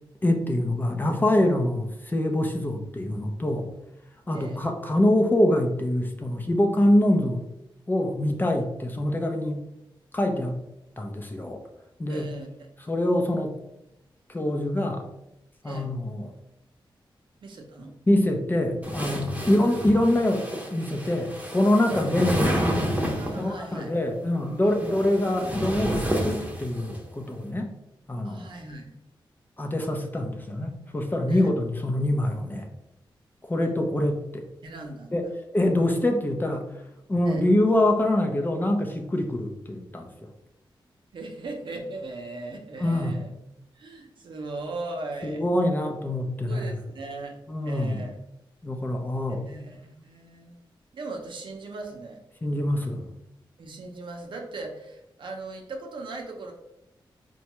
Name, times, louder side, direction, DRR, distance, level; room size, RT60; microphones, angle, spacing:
voice 1, 0.2-3.7 4.3-7.4 7.9-9.6 10.1-10.6 11.0-11.6 12.0-12.3 12.9-13.6 14.3-15.0 15.6-16.3 18.1-22.5 23.4-27.7 28.1-28.5 29.6-32.7 33.5-34.4 35.1-35.2 35.5-36.7 37.1-40.1 42.8-43.2 45.2-46.7 47.5-48.0 48.6-49.4 52.4-53.1, left 1 dB, 20° left, 3 dB, 0.5 m, -25 dB
voice 2, 4.3-4.6 12.1-12.5 15.6-15.9 17.4-17.9 19.4-19.5 21.9-22.1 23.1-24.0 24.7-24.8 28.2-28.9 31.3-31.5 34.6-35.2 37.3-37.4 41.1-43.3 43.7-45.4 46.5-47.4 47.6-48.1 49.3-50.6 50.9-52.2 53.6-56.5, right 2 dB, 65° right, 2 dB, 0.6 m, -38 dB
sound 1, 18.8-23.5 24.5-27.0, equal, 15° right, 0.8 m, -29 dB
4.3 x 2.2 x 2.9 m, 0.85 s
cardioid pair, 85°, 9 cm